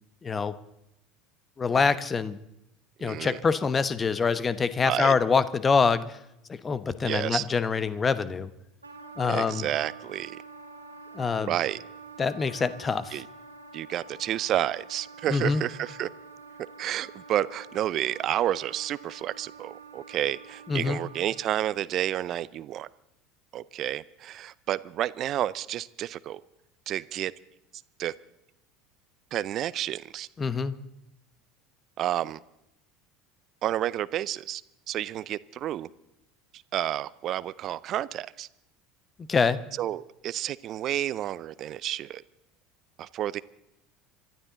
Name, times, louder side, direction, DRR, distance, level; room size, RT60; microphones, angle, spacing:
voice 1, 0.2-0.5 1.6-2.4 3.0-6.2 6.5-8.5 9.2-9.7 11.1-11.5 12.2-13.2 15.3-15.6 20.7-21.0 30.4-30.7 39.3-39.6, left 5 dB, 25° left, 1.0 m, -25 dB
voice 2, 3.0-3.4 4.8-5.2 7.0-7.4 9.3-10.4 11.4-11.8 13.1-13.2 13.7-16.1 16.8-22.9 23.5-26.4 26.9-27.3 28.0-28.1 29.3-30.3 32.0-32.4 33.6-34.6 34.9-35.9 36.7-38.5 39.8-42.2 43.0-43.4, right 12 dB, 45° right, 0.5 m, -30 dB
Wind instrument woodwind instrument, 8.8-21.7, right 4 dB, 90° right, 1.7 m, -47 dB
26.0 x 12.5 x 4.0 m
figure-of-eight pair, 70°, 0 cm